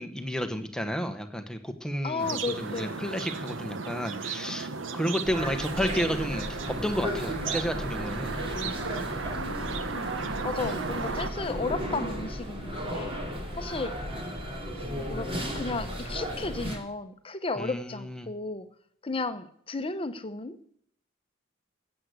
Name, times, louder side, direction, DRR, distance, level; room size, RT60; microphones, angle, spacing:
voice 1, 0.0-6.5 6.8-8.4 17.6-17.9, equal, 5° left, 7 dB, 1.1 m, -31 dB
voice 2, 2.0-3.1 9.3-10.1 10.4-13.2 13.6-13.9 14.8-18.7 19.0-20.6, left 3 dB, 30° left, 10 dB, 0.9 m, -34 dB
sound 1, 2.2-11.3, right 4 dB, 75° right, 1.0 m, -35 dB
sound 2, 5.2-16.8, equal, 30° right, 2.9 m, -35 dB
14.0 x 8.1 x 8.3 m, 0.65 s
head